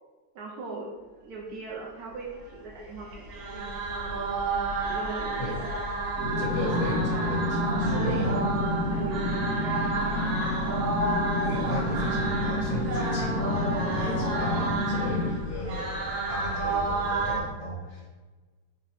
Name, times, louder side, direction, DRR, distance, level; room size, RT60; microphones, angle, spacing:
voice 1, 0.3-0.9 1.2-4.2 4.7-5.4 7.9-8.6 8.9-10.6, right 2 dB, 70° right, -3 dB, 0.9 m, -39 dB
sound 1, 3.1-17.4, right 2 dB, 90° right, 1.5 m, -31 dB
sound 2, 6.2-15.3, left 1 dB, 55° left, 1.4 m, -29 dB
voice 2, 6.4-8.4 11.5-18.1, left 1 dB, 20° left, -10 dB, 1.2 m, -35 dB
4.0 x 2.6 x 3.0 m, 1.3 s
omnidirectional pair, 2.0 m